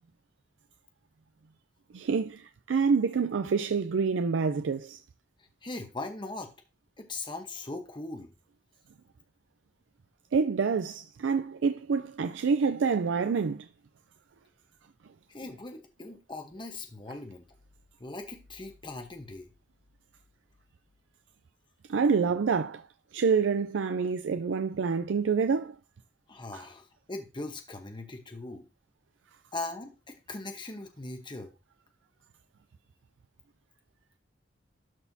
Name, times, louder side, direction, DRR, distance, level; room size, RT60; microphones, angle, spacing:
voice 1, 1.9-5.0 10.3-13.7 21.9-22.8 23.1-25.7, right 5 dB, 85° right, 0.4 m, -27 dB
voice 2, 5.6-6.5 7.0-8.3 15.3-17.4 18.0-19.5 26.3-28.6 29.5-31.5, left 2 dB, 25° left, 1.0 m, -40 dB
12.5 x 4.2 x 2.7 m
head